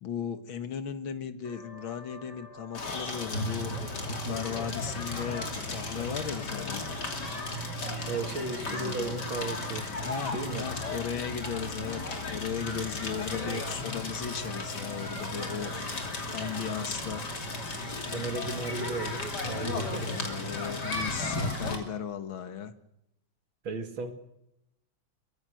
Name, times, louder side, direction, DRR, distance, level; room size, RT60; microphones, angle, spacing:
voice 1, 0.0-6.9 8.7-9.1 9.9-15.7 16.3-17.2 19.9-22.7, left 7 dB, 90° left, 10 dB, 2.3 m, -36 dB
sound 1, 1.4-12.7, left 1 dB, 25° left, 5.5 m, -55 dB
Crackle, 2.7-21.8, left 2 dB, 55° left, 3.5 m, -35 dB
voice 2, 8.1-9.9 10.3-10.7 13.4-13.6 16.3-16.4 18.1-20.6 23.6-24.1, right 3 dB, 85° right, 7 dB, 2.8 m, -35 dB
23.0 x 21.0 x 6.4 m, 0.82 s
omnidirectional pair, 2.1 m